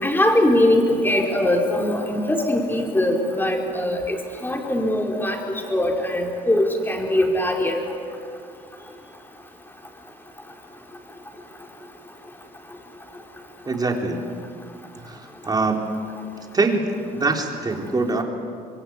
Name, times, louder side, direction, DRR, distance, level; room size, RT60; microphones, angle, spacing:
voice 1, 0.0-7.8, left 1 dB, 10° left, 1 dB, 4.6 m, -21 dB
voice 2, 13.7-14.2 15.0-16.0 16.5-16.8 17.1-18.2, right 3 dB, 25° right, 2 dB, 3.8 m, -23 dB
26.0 x 22.5 x 9.6 m, 2.3 s
cardioid pair, 110°, 17 cm